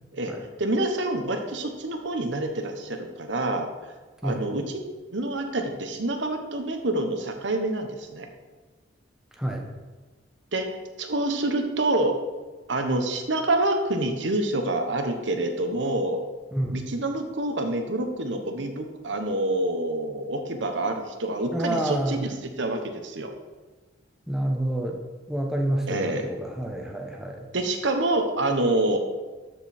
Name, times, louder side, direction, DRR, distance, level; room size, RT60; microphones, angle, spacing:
voice 1, 0.6-3.7 4.2-4.8 5.1-8.3 10.5-10.7 11.0-12.2 12.7-16.2 16.7-23.3 25.9-26.3 27.5-29.0, right 2 dB, 75° right, 5 dB, 1.1 m, -27 dB
voice 2, 9.4-9.7 16.5-16.8 21.5-22.2 24.3-25.0 25.3-27.5, right 1 dB, 5° right, 0 dB, 1.0 m, -28 dB
13.0 x 5.3 x 4.4 m, 1.3 s
head